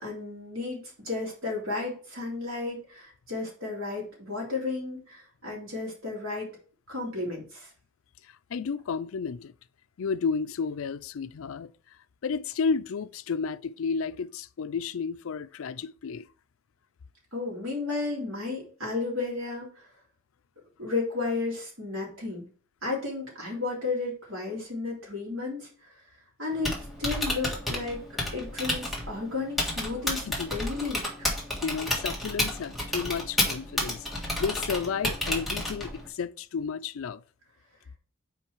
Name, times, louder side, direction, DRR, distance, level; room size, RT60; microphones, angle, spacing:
voice 1, 0.0-6.5 6.9-7.7 17.3-19.7 20.8-22.5 22.8-25.7 26.4-26.7 27.0-28.0 28.3-31.3, left 3 dB, 85° right, 3.3 m, -33 dB
voice 2, 8.5-9.5 10.0-11.7 12.2-16.2 30.3-30.5 31.6-34.0 34.4-37.2, left 5 dB, 80° left, 0.4 m, -32 dB
Typing, 26.5-36.1, left 1 dB, ahead, 1.6 m, -31 dB
5.6 x 4.5 x 4.6 m
head